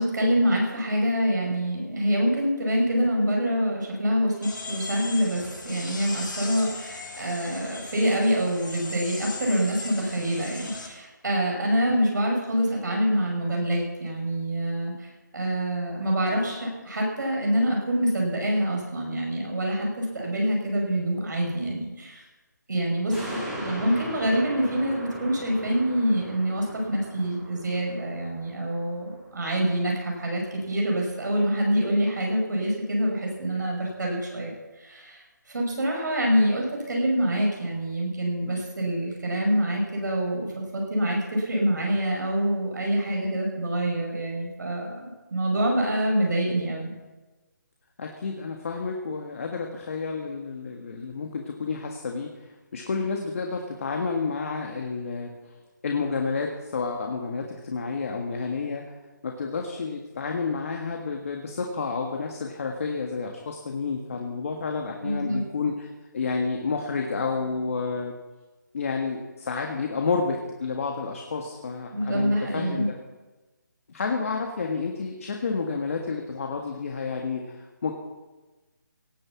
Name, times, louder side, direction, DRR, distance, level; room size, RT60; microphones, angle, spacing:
voice 1, 0.0-22.2 22.7-34.5 34.8-46.9 65.0-65.4 71.9-72.9, equal, 65° right, -1 dB, 5.8 m, -26 dB
sound 1, 4.4-10.9, left 3 dB, 85° left, 5.5 m, -38 dB
sound 2, 23.1-29.8 30.2-30.3, equal, 5° right, 4.8 m, -39 dB
voice 2, 48.0-52.3 52.7-55.3 55.8-58.8 59.2-68.1 68.7-72.8 73.9-77.6 77.8-77.9, left 4 dB, 45° left, 2 dB, 1.6 m, -30 dB
18.0 x 9.2 x 7.2 m, 1.2 s
figure-of-eight pair, 165°, 11 cm